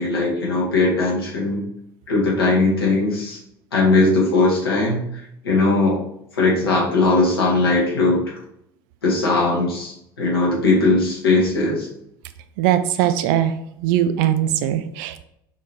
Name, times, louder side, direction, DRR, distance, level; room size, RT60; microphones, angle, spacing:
voice 1, 0.0-1.6 2.1-3.4 3.7-5.0 5.4-6.0 6.4-8.2 9.0-11.9, left 3 dB, 80° left, -3 dB, 1.3 m, -19 dB
voice 2, 12.6-13.5 13.8-15.2, right 11 dB, 60° right, 11 dB, 0.4 m, -20 dB
5.7 x 3.0 x 2.7 m, 0.75 s
figure-of-eight pair, 65°, 12 cm